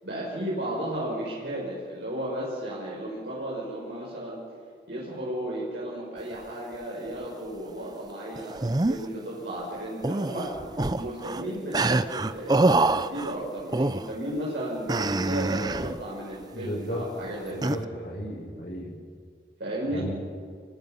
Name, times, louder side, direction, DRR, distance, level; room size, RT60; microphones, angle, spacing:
voice 1, 0.0-4.4 4.9-10.5 10.9-17.8 19.6-20.0, right 1 dB, 75° right, -6 dB, 6.8 m, -34 dB
sound 1, 8.4-9.1 10.0-11.4 11.7-13.4 13.7-14.1 14.9-16.0 17.6-17.9, right 2 dB, 20° right, 0.5 m, -25 dB
voice 2, 16.5-17.1 17.5-18.9 19.9-20.1, equal, 55° left, -4 dB, 6.5 m, -34 dB
29.0 x 25.0 x 5.5 m, 2.1 s
head